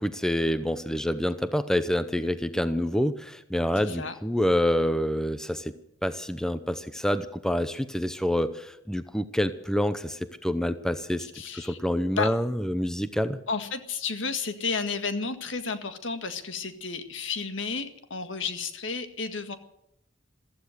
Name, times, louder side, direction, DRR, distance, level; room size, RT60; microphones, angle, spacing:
voice 1, 0.0-5.7 6.0-11.3 11.5-13.4, equal, 5° left, 11 dB, 0.7 m, -27 dB
voice 2, 3.8-4.1 11.2-11.8 12.2-12.3 13.5-19.6, left 5 dB, 70° left, 8 dB, 1.8 m, -32 dB
15.5 x 14.5 x 6.6 m, 0.80 s
head